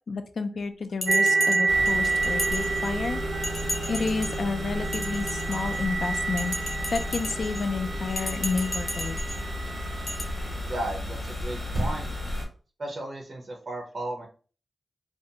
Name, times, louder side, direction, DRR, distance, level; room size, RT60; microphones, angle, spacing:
voice 1, 0.1-3.2 3.9-6.6 6.9-9.3, left 4 dB, 70° left, 9 dB, 0.3 m, -30 dB
Bell, 1.0-3.1 3.4-4.4 4.8-5.9 6.4-7.6 8.1-9.4 10.1-10.2, equal, 25° left, 0.6 m, -35 dB
sound 1, 1.1-10.6, right 4 dB, 80° right, 0.3 m, -29 dB
sound 2, 1.7-12.5, left 1 dB, 20° right, 1.2 m, -34 dB
voice 2, 10.6-12.1 12.8-14.3, right 1 dB, 45° right, 0 dB, 0.6 m, -35 dB
2.4 x 2.2 x 2.8 m, 0.38 s
wide cardioid pair, 85°, 0 cm